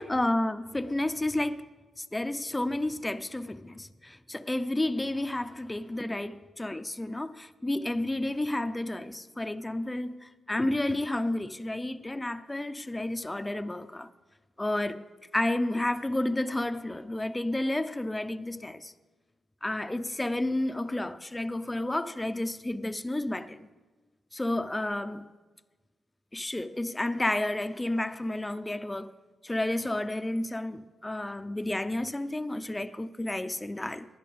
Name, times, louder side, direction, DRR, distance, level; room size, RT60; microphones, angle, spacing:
voice 1, 0.0-1.7 2.0-14.1 14.6-15.0 15.3-18.9 19.6-23.7 24.3-25.2 26.3-29.1 29.4-34.1, left 1 dB, 20° left, 0.7 m, -31 dB
19.5 x 11.0 x 3.4 m
supercardioid pair, 45°, 0 cm